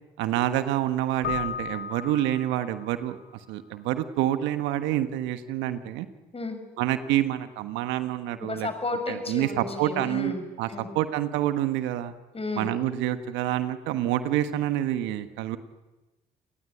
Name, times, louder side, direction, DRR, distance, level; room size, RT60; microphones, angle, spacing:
voice 1, 0.2-3.2 3.5-6.1 6.8-8.7 9.1-10.7 10.9-12.1 12.6-15.6, right 13 dB, 80° right, 10 dB, 1.4 m, -27 dB
Keyboard (musical), 1.2-3.0, left 7 dB, 65° left, 1.1 m, -34 dB
voice 2, 8.4-10.4 10.7-10.9 12.3-12.7, left 2 dB, 30° left, 7 dB, 6.8 m, -32 dB
29.0 x 19.0 x 9.2 m, 1.1 s
hypercardioid pair, 50°, 19 cm